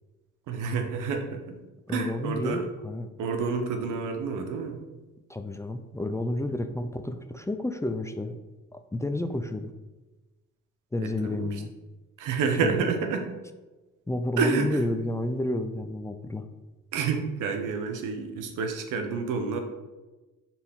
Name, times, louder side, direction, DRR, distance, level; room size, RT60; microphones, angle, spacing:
voice 1, 0.5-1.6 1.9-2.7 3.2-4.8 11.0-11.6 12.2-13.3 14.4-14.8 16.9-19.6, right 5 dB, 90° right, 5 dB, 1.0 m, -29 dB
voice 2, 1.9-3.1 5.3-8.4 8.7-9.7 10.9-11.7 12.6-12.9 14.1-16.4, left 1 dB, 10° left, 7 dB, 0.4 m, -30 dB
6.9 x 4.4 x 3.7 m, 1.2 s
cardioid pair, 90°, 30 cm